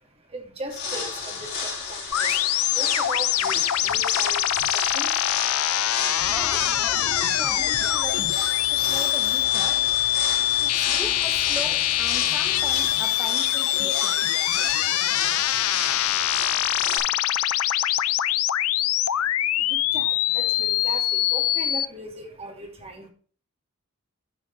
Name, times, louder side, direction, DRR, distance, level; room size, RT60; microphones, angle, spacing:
voice 1, 0.0-5.5 18.9-23.1, right 1 dB, 25° right, 2.3 m, -39 dB
sound 1, 0.7-17.0, left 5 dB, 50° left, 4.4 m, -32 dB
sound 2, 2.1-21.8, left 13 dB, 75° left, 0.5 m, -24 dB
voice 2, 6.2-9.9 10.6-14.3, right 1 dB, 5° right, 0.7 m, -39 dB
sound 3, 6.2-13.0, left 1 dB, 80° right, 3.4 m, -43 dB
10.0 x 4.9 x 5.3 m
head